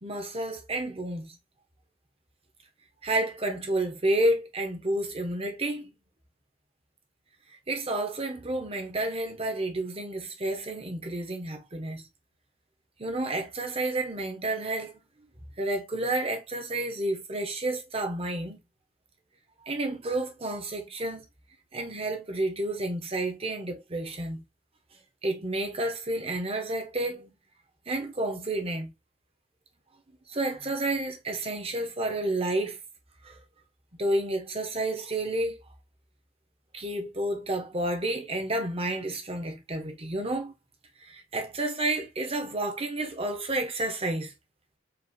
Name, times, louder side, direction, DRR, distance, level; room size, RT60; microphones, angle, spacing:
voice 1, 0.0-1.3 3.0-5.9 7.7-12.1 13.0-15.0 15.6-18.6 19.6-21.2 21.7-24.4 25.2-27.3 27.9-28.9 30.1-32.8 33.2-33.4 34.0-35.6 36.7-40.5 41.1-44.3, right 1 dB, 30° right, 1.1 m, -30 dB
5.0 x 2.7 x 2.8 m
head